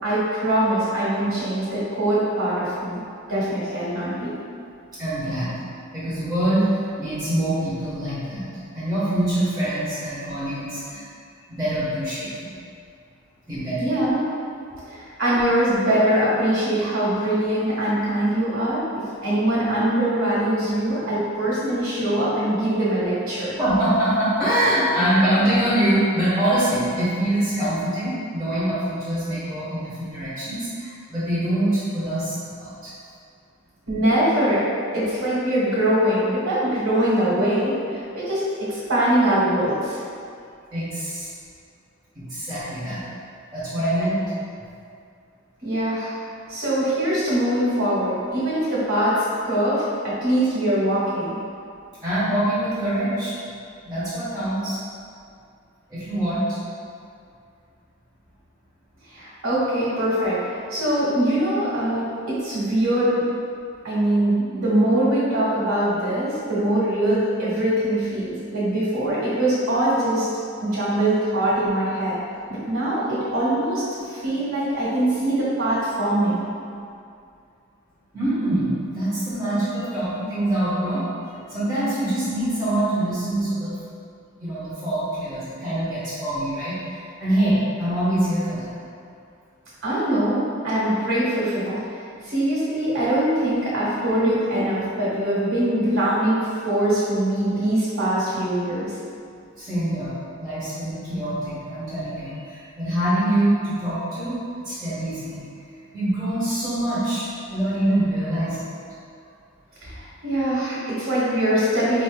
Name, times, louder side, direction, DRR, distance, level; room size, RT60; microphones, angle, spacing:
voice 1, 0.0-3.0 3.3-4.3 13.8-14.2 14.9-18.8 19.2-23.5 33.9-34.6 34.9-40.0 45.6-46.2 46.5-51.4 59.1-60.4 60.7-63.2 63.8-70.3 70.6-72.2 72.5-76.4 89.8-91.8 92.2-98.9 109.8-112.0, right 1 dB, 80° right, -9 dB, 1.5 m, -22 dB
voice 2, 5.0-5.5 5.9-8.4 8.7-11.0 11.5-12.5 13.5-13.9 23.6-32.9 40.7-41.3 42.1-43.0 43.5-44.2 52.0-53.3 53.8-54.8 55.9-56.6 78.1-81.1 81.5-83.8 84.4-88.7 99.6-104.4 104.6-105.4 105.9-108.7, right 1 dB, 5° right, -15 dB, 1.3 m, -24 dB
5.2 x 2.9 x 2.3 m, 2.4 s
head